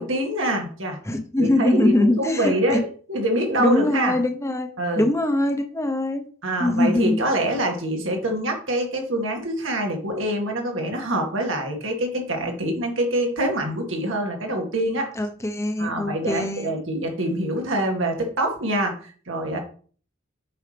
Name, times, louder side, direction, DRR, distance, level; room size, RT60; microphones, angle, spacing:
voice 1, 0.0-1.0 1.4-4.1 4.8-5.1 6.4-15.1 15.8-19.6, right 1 dB, 75° right, 2 dB, 2.0 m, -25 dB
voice 2, 1.1-2.8 3.6-6.3 6.6-7.2 15.2-16.7, left 1 dB, 15° left, 7 dB, 0.9 m, -22 dB
8.1 x 5.6 x 3.4 m, 0.43 s
head